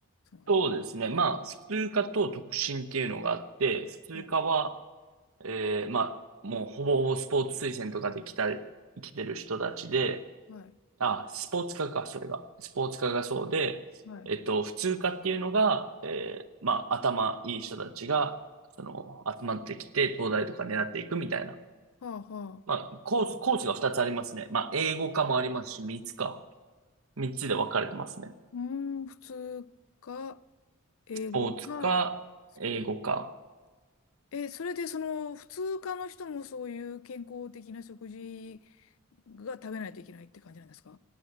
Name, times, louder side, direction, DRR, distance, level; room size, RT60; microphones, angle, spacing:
voice 1, 0.5-4.8 5.4-6.1 6.4-8.6 9.0-10.2 11.0-13.8 14.2-18.4 18.8-21.6 22.7-26.4 27.2-28.3 31.3-32.2 32.6-33.3, right 4 dB, 85° right, 1.0 m, -30 dB
voice 2, 22.0-22.7 28.5-29.7 30.0-30.4 31.1-31.9 34.3-38.6 39.3-41.0, left 5 dB, 75° left, 0.5 m, -38 dB
18.0 x 9.1 x 8.0 m
head